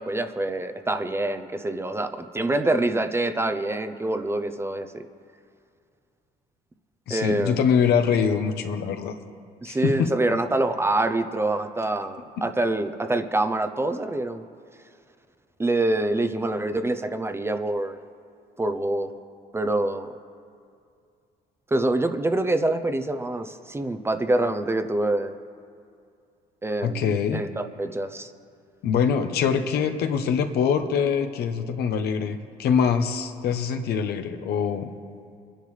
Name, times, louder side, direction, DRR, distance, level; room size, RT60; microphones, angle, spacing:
voice 1, 0.0-5.0 7.1-7.7 9.6-14.4 15.6-18.0 18.6-19.1 19.5-20.2 21.7-25.3 26.6-28.3, right 2 dB, 15° right, 8 dB, 0.6 m, -26 dB
voice 2, 7.1-9.1 9.7-10.1 12.4-12.5 26.8-27.4 28.8-34.9, left 7 dB, 70° left, 7 dB, 1.0 m, -24 dB
23.5 x 10.5 x 3.3 m, 2.4 s
cardioid pair, 110°, 17 cm